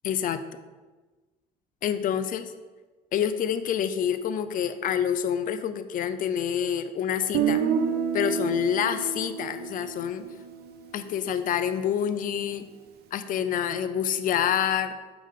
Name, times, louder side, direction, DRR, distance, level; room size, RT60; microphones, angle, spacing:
voice 1, 0.0-0.4 1.8-2.5 3.1-7.6 8.1-10.2 10.9-12.7 13.1-15.0, left 9 dB, 55° left, 11 dB, 0.5 m, -27 dB
Guitar, 7.3-11.3, right 7 dB, 70° right, 0.7 m, -29 dB
7.0 x 5.0 x 3.7 m, 1.3 s
cardioid pair, 110°, 17 cm